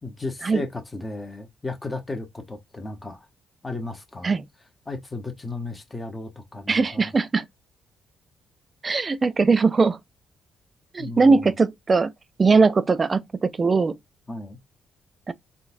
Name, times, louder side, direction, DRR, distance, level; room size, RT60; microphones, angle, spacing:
voice 1, 0.0-3.3 3.6-4.3 4.9-7.1 11.0-11.5 14.3-14.6, left 2 dB, 20° left, 0.9 m, -34 dB
voice 2, 6.7-7.4 8.8-10.0 10.9-12.1 12.4-14.0 15.3-15.4, right 4 dB, 30° right, 0.4 m, -20 dB
3.8 x 2.3 x 2.6 m
cardioid pair, 90°, 0 cm